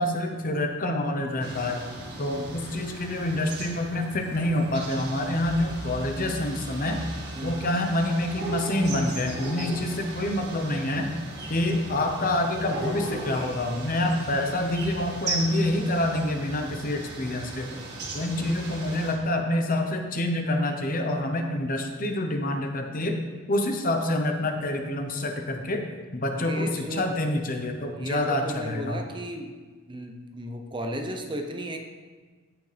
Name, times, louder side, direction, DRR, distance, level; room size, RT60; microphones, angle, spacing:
voice 1, 0.0-1.9 2.2-7.0 7.4-11.1 11.5-17.8 18.1-23.2 23.5-25.8 26.1-29.0, left 1 dB, 40° left, 5 dB, 0.9 m, -27 dB
sound 1, 1.4-19.1, right 2 dB, 50° right, 2.0 m, -37 dB
voice 2, 2.2-2.6 7.3-7.6 18.2-18.6 26.4-27.1 28.0-29.5 29.9-31.8, right 1 dB, 20° right, 4 dB, 0.8 m, -35 dB
15.5 x 6.1 x 3.4 m, 1.4 s
head